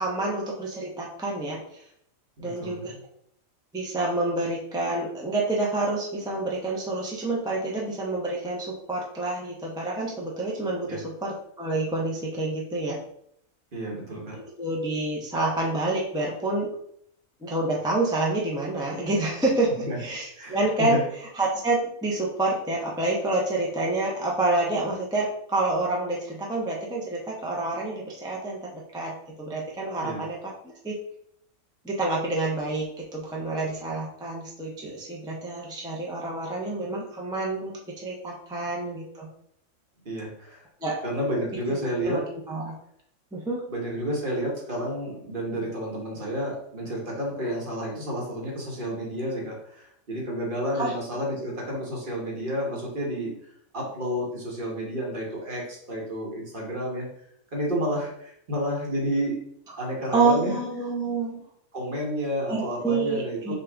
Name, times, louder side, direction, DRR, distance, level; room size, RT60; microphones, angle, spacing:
voice 1, 0.0-1.8 2.4-2.9 3.7-13.0 14.3-16.7 17.4-21.0 21.4-29.1 29.4-30.4 30.6-31.0 31.8-32.9 33.1-39.3 40.8-41.0 41.7-42.2 42.5-42.7 43.3-43.6 50.7-50.9 60.1-61.4 62.5-63.5, right 2 dB, 5° right, -3 dB, 0.6 m, -28 dB
voice 2, 2.4-3.0 10.9-11.0 13.7-14.4 19.9-20.0 20.4-21.0 30.0-30.2 40.0-40.6 41.0-42.2 43.7-53.4 53.7-57.1 57.5-59.4 59.8-60.6 61.7-63.5, equal, 40° right, -2 dB, 1.2 m, -30 dB
5.4 x 2.5 x 3.4 m, 0.70 s
omnidirectional pair, 1.4 m